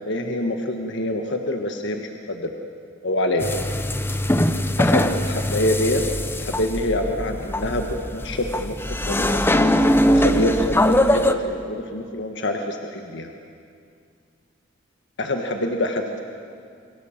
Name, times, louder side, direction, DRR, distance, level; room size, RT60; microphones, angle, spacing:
voice 1, 0.0-2.5 3.0-3.5 4.8-6.0 6.3-8.8 9.1-9.4 10.1-13.3 15.2-16.2, left 1 dB, 65° left, 4 dB, 1.6 m, -26 dB
sound 1, 3.4-11.3, left 1 dB, 10° left, 1.0 m, -21 dB
29.5 x 24.0 x 7.4 m, 2.3 s
head